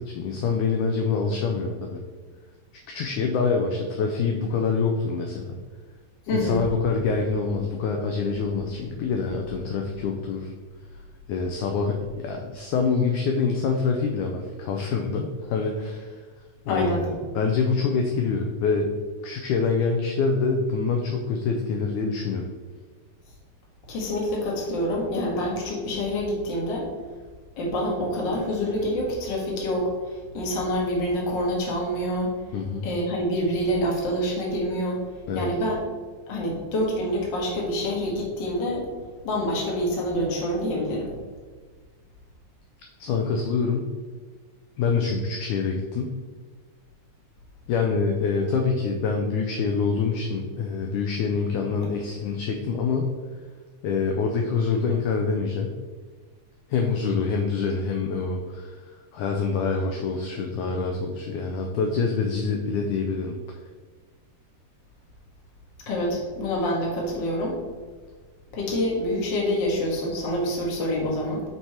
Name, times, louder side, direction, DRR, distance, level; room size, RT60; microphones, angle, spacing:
voice 1, 0.0-2.0 2.9-5.5 6.3-10.5 11.3-16.2 16.7-18.9 19.2-22.5 32.5-32.9 35.3-35.5 43.0-43.9 44.8-46.2 47.7-53.1 53.8-55.8 56.7-63.6, left 5 dB, 75° left, 2 dB, 1.9 m, -26 dB
voice 2, 6.3-6.6 16.7-17.1 23.9-26.9 27.6-32.3 32.8-35.0 35.3-35.8 36.3-38.8 39.2-41.1 65.9-67.5 68.5-71.4, equal, 45° left, -3 dB, 1.8 m, -26 dB
8.0 x 4.6 x 4.3 m, 1.5 s
omnidirectional pair, 4.0 m